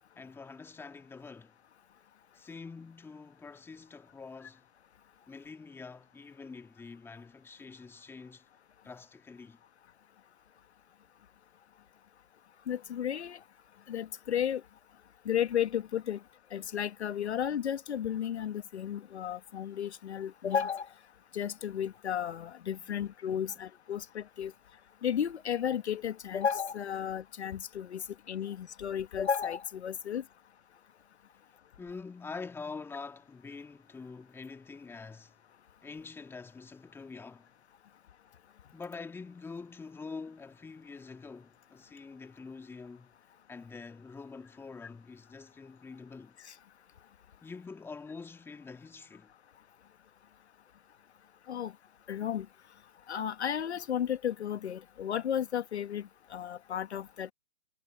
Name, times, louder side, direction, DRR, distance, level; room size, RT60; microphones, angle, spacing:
voice 1, 0.2-1.5 2.3-4.6 5.3-8.4 8.8-9.6 22.8-23.0 23.4-23.6 31.8-35.3 35.8-37.5 38.7-43.1 43.5-46.4 47.4-49.3, left 4 dB, 5° left, 2.0 m, -46 dB
voice 2, 12.7-13.4 13.9-14.6 15.2-16.2 16.5-20.9 21.3-24.5 25.0-30.2 51.5-51.7 52.1-52.5 53.1-57.3, left 9 dB, 55° left, 1.3 m, -33 dB
figure-of-eight pair, 130°, 40 cm